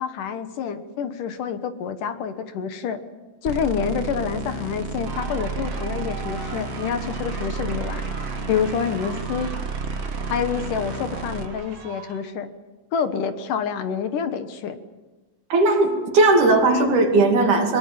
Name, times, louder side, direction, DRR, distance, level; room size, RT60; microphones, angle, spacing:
voice 1, 0.0-3.0 3.4-8.1 8.5-9.5 10.3-12.5 12.9-14.8, left 7 dB, 70° left, 9 dB, 2.8 m, -27 dB
sound 1, 3.4-11.4, right 4 dB, 45° right, 0.8 m, -31 dB
sound 2, 5.1-12.3, right 4 dB, 85° right, 5.2 m, -39 dB
voice 2, 15.5-17.8, right 2 dB, 65° right, 3 dB, 4.0 m, -17 dB
23.0 x 22.5 x 7.6 m, 1.2 s
omnidirectional pair, 4.0 m